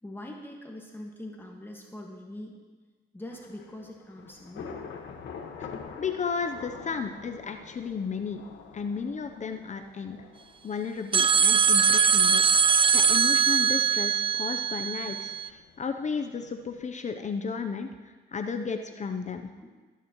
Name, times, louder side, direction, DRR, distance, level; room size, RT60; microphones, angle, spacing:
voice 1, 0.0-2.6 3.1-4.8 19.6-19.7, left 1 dB, 10° left, 0 dB, 1.6 m, -42 dB
Thunder / Rain, 3.3-16.9, left 6 dB, 70° left, 1.5 m, -47 dB
voice 2, 5.9-8.4 8.7-10.2 10.6-12.4 12.9-19.5, left 5 dB, 35° left, 7 dB, 0.7 m, -33 dB
sound 1, 11.1-15.5, right 6 dB, 25° right, 0.4 m, -22 dB
19.5 x 9.2 x 3.1 m, 1.4 s
cardioid pair, 90°, 20 cm